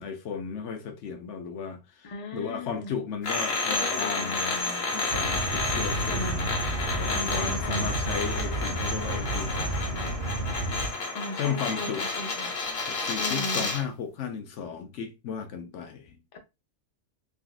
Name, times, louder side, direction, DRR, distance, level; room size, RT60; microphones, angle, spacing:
voice 1, 0.0-6.6 6.9-10.2 11.4-12.1 12.9-16.2, left 6 dB, 70° left, 0.9 m, -35 dB
voice 2, 2.0-2.9 3.7-4.3 6.0-6.4 7.1-7.9 11.1-12.5 13.2-13.7, left 2 dB, 35° left, 0.6 m, -37 dB
sound 1, 3.2-13.9, left 3 dB, 90° left, 1.2 m, -31 dB
sound 2, 5.1-10.9, right 2 dB, 60° right, 0.5 m, -31 dB
3.8 x 2.5 x 2.3 m
omnidirectional pair, 1.3 m